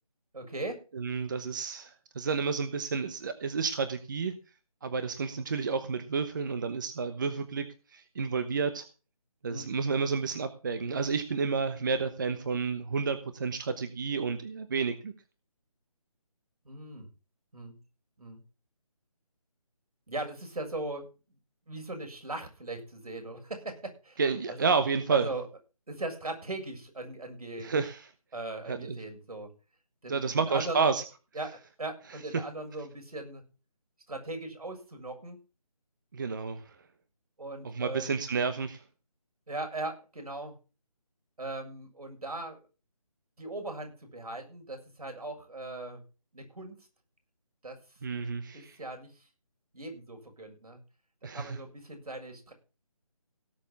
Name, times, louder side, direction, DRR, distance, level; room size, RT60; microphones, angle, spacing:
voice 1, 0.3-0.8 9.5-9.7 16.7-17.1 17.5-17.7 18.2-18.4 20.1-21.1 21.7-24.2 24.5-24.7 25.1-25.4 25.9-27.7 28.3-29.5 30.0-31.0 31.3-31.5 31.8-33.4 34.1-35.4 37.4-38.1 39.5-40.5 41.4-42.6 43.4-46.0 46.3-46.8 47.6-47.8 48.1-48.2 48.5-49.1 49.7-50.8 51.3-52.5, right 2 dB, 75° right, 5 dB, 7.1 m, -39 dB
voice 2, 0.9-4.3 4.8-7.7 7.9-8.8 9.4-15.1 24.2-25.3 27.6-28.1 28.7-29.0 30.1-31.0 32.3-32.4 36.1-36.7 37.6-38.8 48.0-48.8 51.2-51.6, right 5 dB, 30° right, 10 dB, 1.0 m, -30 dB
17.5 x 7.1 x 5.9 m, 0.34 s
figure-of-eight pair, 165°, 19 cm